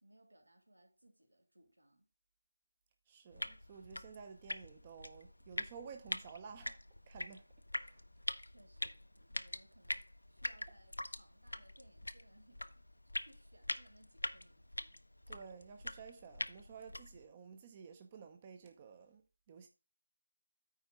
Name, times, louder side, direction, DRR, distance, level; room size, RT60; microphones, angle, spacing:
voice 1, 0.0-2.1 8.4-12.8 13.2-15.0, right 1 dB, 85° right, 2.7 m, -66 dB
voice 2, 3.1-6.8 7.1-7.4 7.7-8.0 15.3-19.2 19.5-19.7, right 6 dB, 25° right, 0.7 m, -53 dB
sound 1, 3.3-17.3, left 1 dB, 85° left, 0.8 m, -44 dB
9.3 x 4.4 x 4.9 m
figure-of-eight pair, 160°, 0 cm